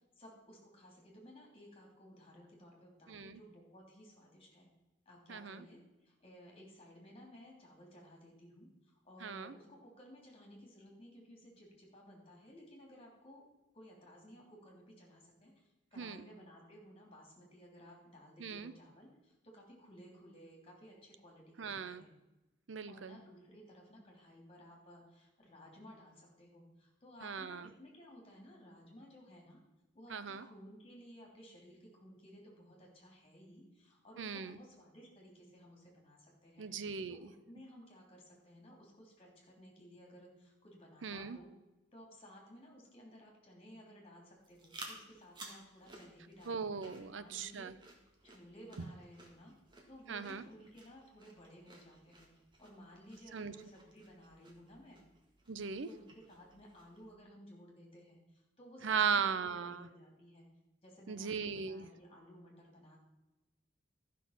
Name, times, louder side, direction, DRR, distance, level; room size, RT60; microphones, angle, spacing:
voice 1, 0.2-4.7 5.0-13.4 13.7-22.1 22.9-29.6 29.9-36.7 37.1-41.5 41.9-47.9 48.2-49.5 49.9-52.3 52.6-55.0 55.8-60.5 60.8-63.0, equal, 30° left, 0 dB, 3.2 m, -57 dB
voice 2, 3.1-3.4 5.3-5.6 9.2-9.5 16.0-16.2 18.4-18.7 21.6-22.0 22.7-23.2 27.2-27.7 30.1-30.4 34.2-34.6 36.6-37.3 41.0-41.4 46.5-47.7 50.1-50.4 53.3-53.5 55.5-55.9 58.8-59.9 61.1-61.9, right 6 dB, 85° right, 13 dB, 0.6 m, -38 dB
sound 1, 44.4-57.1, right 2 dB, 25° right, 1.9 m, -57 dB
13.0 x 6.1 x 5.9 m, 1.0 s
head